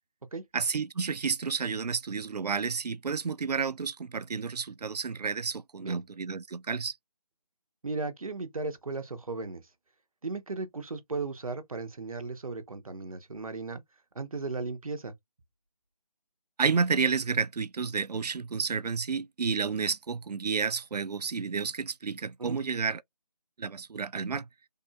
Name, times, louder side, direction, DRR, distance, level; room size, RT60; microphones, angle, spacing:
voice 1, 0.5-7.0 16.6-23.0 23.6-24.4, right 5 dB, 80° right, 0.4 m, -30 dB
voice 2, 7.8-9.6 10.2-13.8 14.1-15.1 22.4-22.6, right 3 dB, 60° right, 0.9 m, -36 dB
3.6 x 2.6 x 2.2 m
figure-of-eight pair, 160°, 20 cm